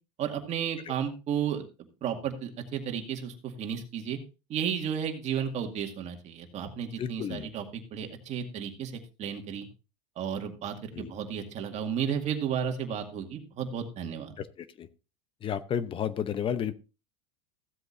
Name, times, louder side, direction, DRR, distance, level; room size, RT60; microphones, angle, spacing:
voice 1, 0.2-1.7 2.0-4.2 4.5-9.7 10.2-14.3, right 8 dB, 35° right, 4 dB, 2.2 m, -33 dB
voice 2, 7.0-7.5 10.9-11.1 14.4-14.9 15.4-16.7, left 8 dB, 30° left, 14 dB, 0.8 m, -32 dB
15.5 x 7.9 x 2.6 m, 0.30 s
supercardioid pair, 125°, 19 cm